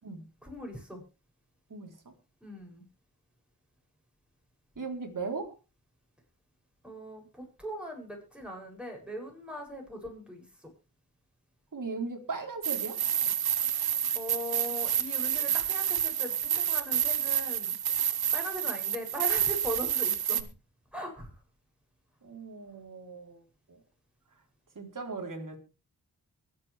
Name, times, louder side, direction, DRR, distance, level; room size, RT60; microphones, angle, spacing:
voice 1, 0.4-1.0 2.4-2.8 6.8-10.7 14.1-17.8 18.3-20.5 20.9-21.3, equal, 5° right, 1 dB, 7.9 m, -40 dB
voice 2, 4.8-5.5 11.7-13.0 22.2-23.4 24.8-25.6, right 4 dB, 55° right, 3 dB, 4.0 m, -37 dB
sound 1, 12.6-20.4, right 10 dB, 80° right, 1.0 m, -29 dB
23.0 x 8.7 x 3.5 m, 0.30 s
cardioid pair, 40°, 37 cm